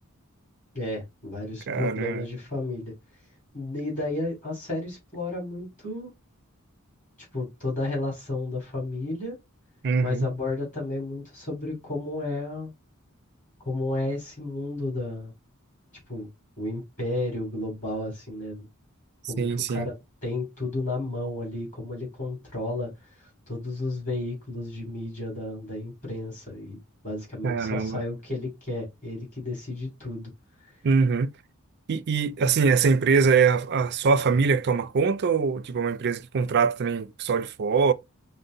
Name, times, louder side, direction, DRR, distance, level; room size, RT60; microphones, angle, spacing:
voice 1, 0.7-2.9 3.5-6.1 7.3-9.3 10.0-12.7 13.6-15.3 16.1-16.3 16.6-18.7 19.3-22.9 23.2-26.8 27.0-30.3, left 2 dB, 35° left, 3.0 m, -32 dB
voice 2, 1.7-2.2 9.8-10.3 19.4-19.9 27.4-28.0 30.8-31.3 31.9-37.9, right 5 dB, 50° right, 0.4 m, -23 dB
5.3 x 2.1 x 3.7 m
head